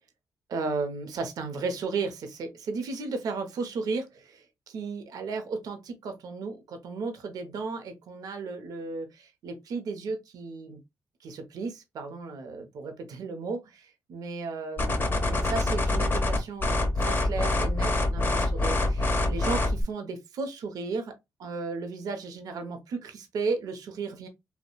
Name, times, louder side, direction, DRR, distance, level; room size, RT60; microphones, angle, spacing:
voice 1, 0.5-10.8 11.2-21.1 21.4-24.3, right 4 dB, 75° right, 0.6 m, -34 dB
sound 1, 14.8-19.8, left 2 dB, 35° left, 0.9 m, -25 dB
3.0 x 2.1 x 2.3 m
supercardioid pair, 55°, 7 cm